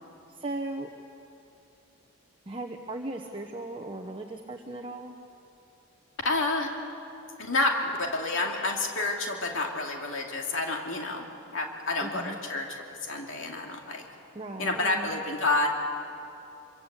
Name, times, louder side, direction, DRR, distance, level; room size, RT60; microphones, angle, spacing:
voice 1, 0.3-0.9 2.5-5.1 12.0-12.4 14.3-15.1, right 2 dB, 25° right, 2 dB, 1.0 m, -37 dB
voice 2, 6.2-6.7 7.4-7.7 8.1-14.0 14.6-15.7, left 2 dB, 65° left, 1 dB, 2.6 m, -29 dB
26.0 x 24.5 x 8.1 m, 2.8 s
head